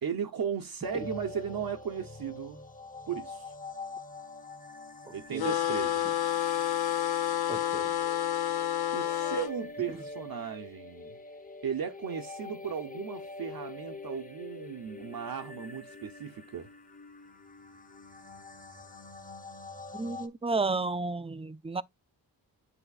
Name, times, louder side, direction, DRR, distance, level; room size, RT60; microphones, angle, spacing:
voice 1, 0.0-2.6 3.1-3.5 5.1-6.1 8.9-11.2 11.6-16.7, right 7 dB, 55° right, 0.9 m, -36 dB
sound 1, 0.8-20.3, left 3 dB, 20° left, 1.1 m, -45 dB
sound 2, 5.4-9.5, left 11 dB, 60° left, 0.8 m, -29 dB
voice 2, 7.5-7.9 9.9-10.0 19.9-21.8, right 3 dB, 15° right, 0.3 m, -32 dB
9.9 x 4.3 x 2.4 m
wide cardioid pair, 160°, 43 cm